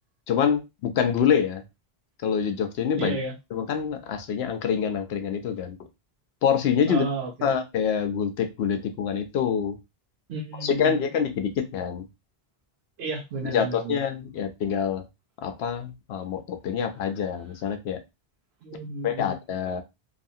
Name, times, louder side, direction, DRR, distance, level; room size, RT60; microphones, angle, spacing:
voice 1, 0.3-1.6 2.2-3.2 3.5-5.8 6.4-7.0 7.4-9.8 10.6-12.1 13.5-15.0 15.4-18.0 19.0-19.8, left 7 dB, 85° left, 7 dB, 0.8 m, -26 dB
voice 2, 3.0-3.4 6.9-7.5 10.3-11.1 13.0-14.0 18.6-19.4, right 3 dB, 85° right, 1 dB, 0.9 m, -32 dB
2.7 x 2.4 x 2.6 m, 0.23 s
omnidirectional pair, 1.0 m